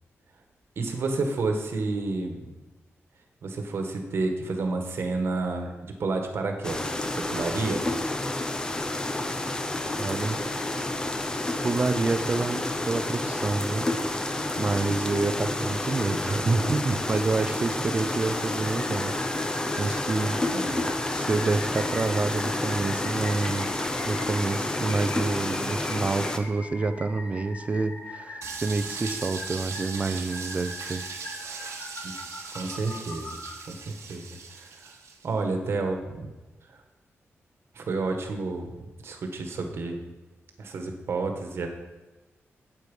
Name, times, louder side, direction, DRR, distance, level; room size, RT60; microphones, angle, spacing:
voice 1, 0.8-2.5 3.4-7.9 20.4-20.9 32.0-32.1 32.5-33.4 33.6-34.9 35.2-36.3 36.7-36.8 37.7-40.0 40.6-41.7, right 3 dB, 55° right, 4 dB, 1.4 m, -30 dB
sound 1, 6.6-26.4, left 2 dB, 15° left, 0.6 m, -29 dB
voice 2, 9.7-10.4 11.6-19.1 19.8-20.7 21.1-31.0 31.4-31.8, right 3 dB, 25° right, 10 dB, 0.6 m, -28 dB
sound 2, 18.6-33.6, left 1 dB, 55° left, 2.3 m, -42 dB
sound 3, 28.4-35.3, right 5 dB, 85° right, 1.3 m, -39 dB
8.2 x 8.2 x 5.4 m, 1.2 s
wide cardioid pair, 175°, 5 cm